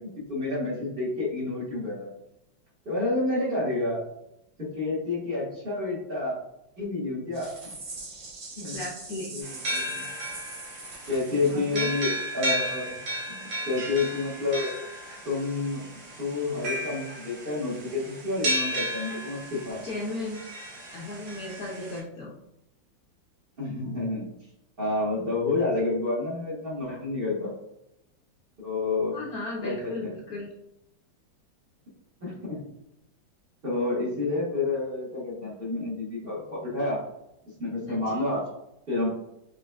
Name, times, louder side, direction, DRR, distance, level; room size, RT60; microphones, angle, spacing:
voice 1, 0.0-2.1 2.8-4.0 4.6-6.4 6.8-7.5 8.6-8.8 9.3-10.0 11.1-13.0 13.3-14.7 15.2-15.8 16.2-19.8 23.6-24.3 24.8-27.5 28.6-29.1 29.6-30.1 32.2-32.6 33.6-37.0 37.6-38.4 38.9-39.1, left 3 dB, 35° right, -7 dB, 1.2 m, -29 dB
sound 1, 7.3-12.1, right 3 dB, 65° right, 2.3 m, -42 dB
voice 2, 8.6-9.4 11.5-11.9 19.8-20.5 20.9-22.3 29.1-30.5 37.9-38.2, left 2 dB, 65° left, -3 dB, 1.0 m, -36 dB
sound 2, 9.4-22.0, equal, 80° right, 2.0 m, -34 dB
5.4 x 3.2 x 2.2 m, 0.84 s
omnidirectional pair, 2.1 m